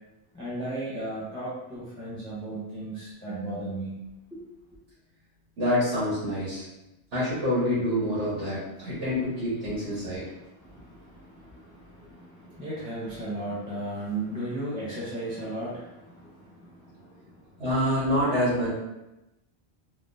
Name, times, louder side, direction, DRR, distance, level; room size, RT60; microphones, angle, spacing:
voice 1, 0.3-3.9 4.3-4.4 8.5-9.0 9.3-9.4 9.7-17.6, right 1 dB, 5° left, -8 dB, 0.6 m, -36 dB
voice 2, 5.6-6.6 7.1-10.3 17.6-18.7, equal, 90° right, -11 dB, 1.5 m, -26 dB
3.6 x 2.1 x 2.5 m, 0.94 s
omnidirectional pair, 1.2 m